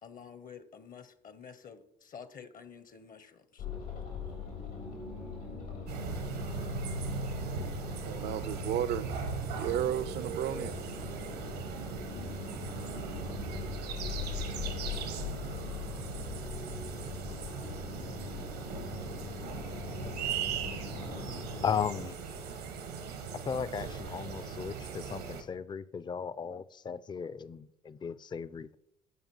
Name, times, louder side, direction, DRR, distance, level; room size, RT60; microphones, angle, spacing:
voice 1, 0.0-3.7, left 7 dB, 45° left, 0.7 m, -50 dB
sound 1, 3.6-21.7, left 4 dB, 85° left, 2.9 m, -41 dB
sound 2, 5.9-25.4, right 5 dB, 85° right, 1.2 m, -39 dB
voice 2, 8.0-9.1 9.6-10.8, right 11 dB, 60° right, 0.5 m, -33 dB
voice 3, 21.6-22.2 23.4-28.7, left 7 dB, 25° left, 0.4 m, -36 dB
14.5 x 5.1 x 3.0 m
hypercardioid pair, 55°, 20 cm